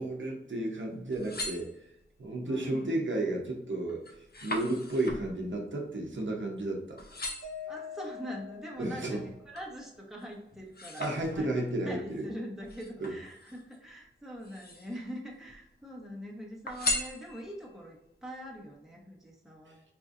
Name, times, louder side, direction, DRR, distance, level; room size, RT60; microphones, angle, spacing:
voice 1, 0.0-1.7 2.2-4.0 4.4-7.0 8.8-9.2 11.0-12.3 13.0-13.1, right 2 dB, 75° right, 0 dB, 0.7 m, -32 dB
sound 1, 1.0-2.2 2.8-3.2 3.6-6.7 7.0-7.7 8.3-9.8 10.2-11.7 12.6-13.8 14.3-15.1 15.4-16.2 16.7-17.7 18.2-18.3, left 2 dB, 50° left, 0.6 m, -39 dB
voice 2, 2.5-3.0 7.7-11.5 11.8-19.8, equal, ahead, -3 dB, 0.9 m, -43 dB
Mallet percussion, 7.4-9.7, left 7 dB, 90° left, 1.4 m, -44 dB
4.2 x 2.5 x 2.4 m, 0.84 s
wide cardioid pair, 60°, 20 cm